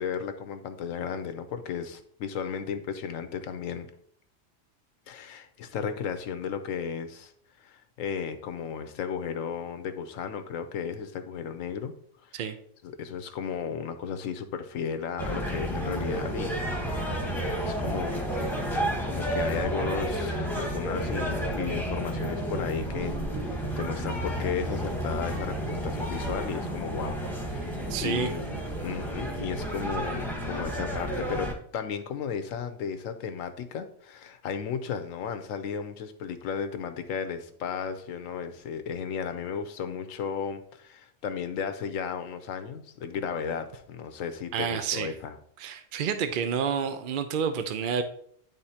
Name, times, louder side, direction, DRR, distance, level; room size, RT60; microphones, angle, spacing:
voice 1, 0.0-3.9 5.1-7.3 7.6-11.9 12.2-12.3 12.8-16.6 17.6-18.5 19.0-45.4, left 7 dB, 85° left, 9 dB, 1.1 m, -34 dB
sound 1, 15.2-31.5, right 1 dB, ahead, 1.0 m, -31 dB
voice 2, 27.9-28.3 44.5-45.1 45.6-48.0, right 7 dB, 60° right, 8 dB, 0.5 m, -29 dB
10.5 x 3.6 x 2.8 m, 0.64 s
omnidirectional pair, 1.4 m